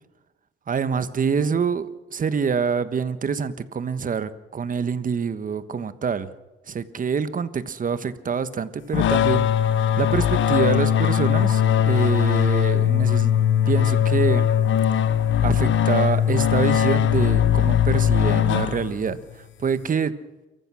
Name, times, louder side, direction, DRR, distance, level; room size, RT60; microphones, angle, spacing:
voice 1, 0.7-6.3 6.7-13.3 13.6-14.5 15.0-15.1 15.4-20.1, right 6 dB, 45° right, 13 dB, 1.4 m, -26 dB
sound 1, 8.9-19.2, left 9 dB, 75° left, 1.1 m, -20 dB
29.5 x 14.5 x 6.3 m, 1.1 s
cardioid pair, 90°, 20 cm